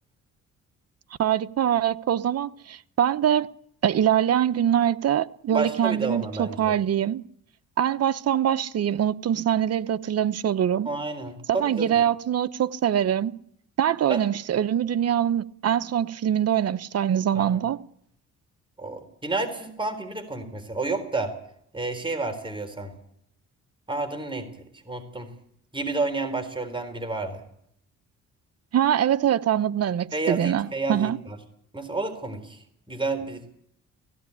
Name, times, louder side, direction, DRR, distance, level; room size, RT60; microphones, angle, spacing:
voice 1, 1.2-3.5 3.8-7.2 7.8-10.9 11.6-13.3 13.8-17.8 28.7-31.2, right 10 dB, 55° right, 0.9 m, -23 dB
voice 2, 5.5-6.8 10.8-12.0 14.1-14.2 17.4-17.6 18.8-21.3 21.7-22.9 23.9-25.3 25.7-27.4 30.1-31.4 31.7-33.4, right 3 dB, 15° right, 4.0 m, -30 dB
17.0 x 17.0 x 9.8 m
cardioid pair, 90°, 30 cm